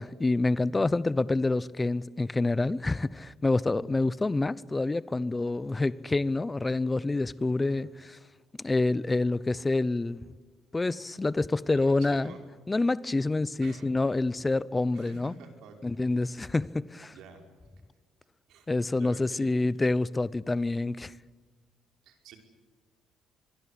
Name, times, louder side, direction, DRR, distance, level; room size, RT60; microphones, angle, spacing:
voice 1, 0.0-8.2 8.6-10.2 10.7-12.3 12.7-15.3 15.8-17.1 18.7-21.1, left 2 dB, 15° left, 0.8 m, -27 dB
voice 2, 11.7-12.4 13.6-13.9 14.9-16.4 17.1-17.4 18.5-18.7 19.0-19.5 22.0-22.4, right 6 dB, 80° right, 5.3 m, -50 dB
25.0 x 22.5 x 8.5 m
cardioid pair, 115°, 0 cm